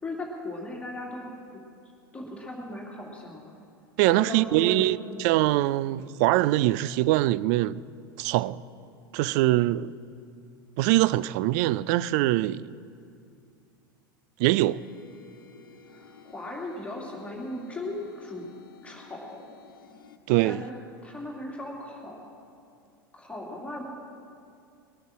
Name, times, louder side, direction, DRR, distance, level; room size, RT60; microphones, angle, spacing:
voice 1, 0.0-1.3 2.1-3.5 4.1-5.4 15.9-18.5 18.8-19.4 20.4-22.2 23.1-23.8, left 1 dB, 10° left, 2.5 m, -37 dB
voice 2, 4.0-7.8 8.2-8.6 9.1-9.9 10.8-12.7 14.4-14.8 20.3-20.6, right 16 dB, 50° right, 0.4 m, -23 dB
sound 1, 14.5-20.2, left 5 dB, 75° left, 1.2 m, -51 dB
21.0 x 9.2 x 6.1 m
figure-of-eight pair, 85°, 12 cm